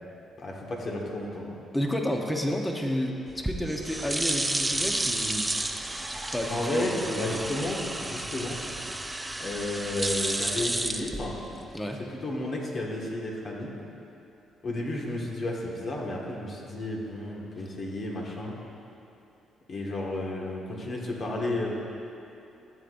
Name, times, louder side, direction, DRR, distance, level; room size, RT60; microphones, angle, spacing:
voice 1, 0.4-1.4 6.5-8.6 9.4-11.4 12.2-13.7 14.6-18.5 19.7-21.7, left 1 dB, 50° left, -2 dB, 1.8 m, -32 dB
voice 2, 1.7-5.5 6.3-7.4 11.7-12.0, equal, 10° left, 1 dB, 1.0 m, -31 dB
sound 1, 3.3-11.7, right 1 dB, 10° right, 0.5 m, -31 dB
14.0 x 8.4 x 2.6 m, 2.9 s
cardioid pair, 90°, 0 cm